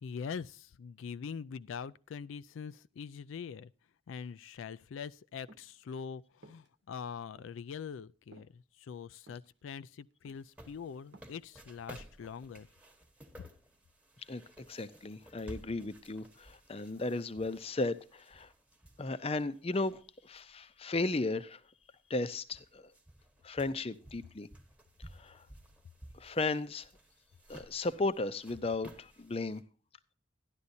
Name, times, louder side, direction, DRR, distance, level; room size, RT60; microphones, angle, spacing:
voice 1, 0.0-3.7 4.1-12.7, left 6 dB, 85° left, 0.4 m, -43 dB
sound 1, 5.5-5.8 6.4-6.7 7.4-7.5 8.3-8.5 9.2-9.5 10.3-10.7 10.9-11.5 12.0-12.2, right 2 dB, 60° right, 1.0 m, -57 dB
sound 2, 10.3-20.4 20.8-20.9 21.8-21.9 22.2-29.6, right 1 dB, 5° right, 1.1 m, -55 dB
voice 2, 14.7-18.5 19.0-21.6 22.1-22.9 23.4-24.5 25.2-25.4 26.1-26.9 27.5-29.6, left 2 dB, 30° left, 0.5 m, -35 dB
13.0 x 11.0 x 2.7 m
head